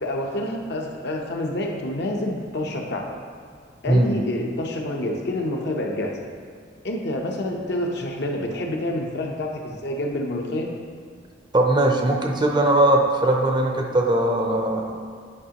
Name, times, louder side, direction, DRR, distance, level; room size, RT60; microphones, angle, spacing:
voice 1, 0.0-3.2 3.8-6.2 6.8-10.7, left 1 dB, 60° left, 0 dB, 0.8 m, -28 dB
voice 2, 11.5-15.0, right 1 dB, 25° right, 1 dB, 0.6 m, -20 dB
9.7 x 5.0 x 2.9 m, 2.1 s
head